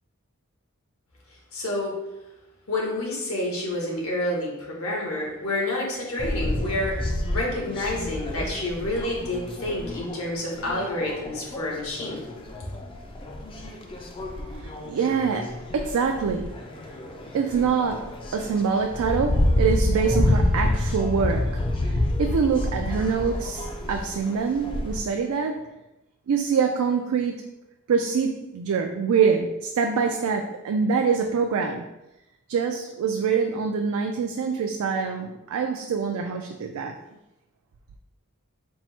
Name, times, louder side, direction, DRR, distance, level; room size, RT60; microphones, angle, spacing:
voice 1, 1.5-2.0 2.7-12.2, left 1 dB, 75° left, -2 dB, 1.2 m, -29 dB
sound 1, 6.2-25.0, left 1 dB, 25° left, 0.3 m, -28 dB
voice 2, 14.6-16.6 17.3-25.7 26.3-27.4 27.9-31.8 32.5-36.9, right 5 dB, 80° right, 4 dB, 0.3 m, -25 dB
4.4 x 2.1 x 4.3 m, 0.94 s
head